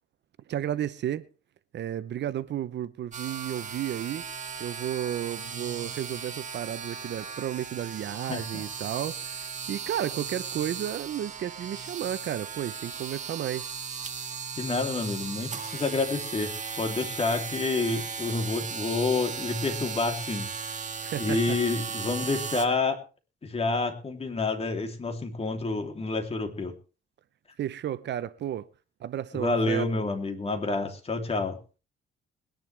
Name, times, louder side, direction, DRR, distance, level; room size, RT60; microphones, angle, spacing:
voice 1, 0.5-1.3 1.7-4.2 4.6-13.8 21.0-21.6 27.6-28.7 29.0-30.1, right 11 dB, 60° right, 0.8 m, -33 dB
sound 1, 3.1-22.7, right 6 dB, 40° right, 1.9 m, -37 dB
voice 2, 8.3-8.6 14.6-20.5 21.2-23.0 23.4-26.7 29.3-31.6, left 3 dB, 30° left, 3.2 m, -28 dB
21.5 x 10.5 x 3.4 m
cardioid pair, 90°, 20 cm